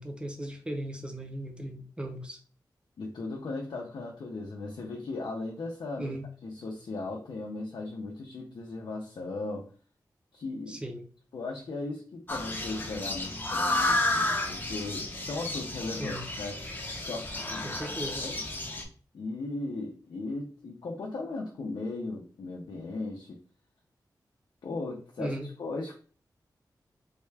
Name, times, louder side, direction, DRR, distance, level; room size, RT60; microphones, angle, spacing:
voice 1, 0.0-2.4 6.0-6.3 10.7-11.0 16.0-16.3 17.6-18.3 25.2-25.5, right 1 dB, 15° right, 4 dB, 0.6 m, -37 dB
voice 2, 3.0-6.1 6.4-9.7 10.3-10.8 11.3-16.6 17.0-18.4 19.1-23.4 24.6-25.9, left 3 dB, 80° left, -1 dB, 0.5 m, -37 dB
sound 1, 12.3-18.8, left 2 dB, 25° left, 0.6 m, -31 dB
3.5 x 2.3 x 3.2 m, 0.41 s
wide cardioid pair, 120°, 7 cm